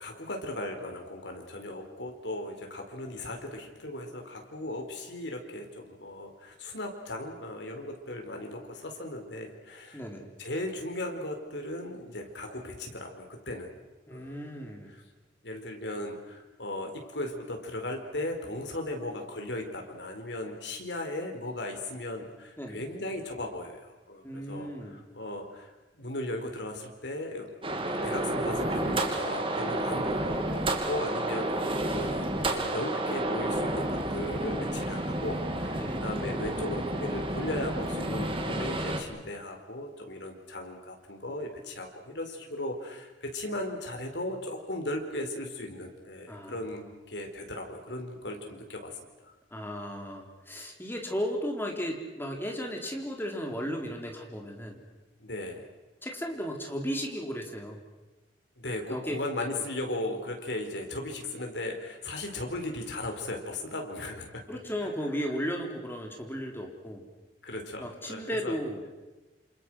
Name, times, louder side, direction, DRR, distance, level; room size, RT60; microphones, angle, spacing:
voice 1, 0.0-10.0 10.4-13.7 14.1-14.4 14.9-15.0 15.4-27.5 28.0-31.5 31.9-48.9 49.2-49.3 55.2-55.6 58.6-64.4 64.8-64.9 67.4-68.5, left 1 dB, 75° left, 3 dB, 4.6 m, -37 dB
voice 2, 9.9-10.3 14.1-14.9 22.6-22.9 24.2-25.0 35.7-36.0 46.3-46.5 49.5-54.8 56.0-57.8 58.9-59.5 64.5-67.0 67.8-68.8, equal, 15° left, 1 dB, 4.0 m, -35 dB
sound 1, 27.6-39.0, right 1 dB, 30° right, 2.7 m, -30 dB
28.0 x 27.5 x 6.4 m, 1.2 s
head